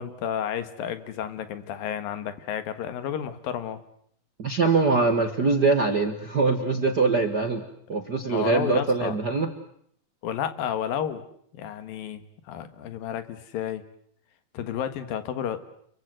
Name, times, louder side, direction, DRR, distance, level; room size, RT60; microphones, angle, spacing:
voice 1, 0.0-3.8 8.3-9.2 10.2-11.2 11.5-12.2 12.5-13.8 14.5-15.6, left 9 dB, 70° left, 11 dB, 3.4 m, -31 dB
voice 2, 4.4-7.6 7.9-9.5, right 4 dB, 50° right, 6 dB, 1.2 m, -23 dB
28.0 x 23.5 x 7.8 m, 0.66 s
omnidirectional pair, 4.3 m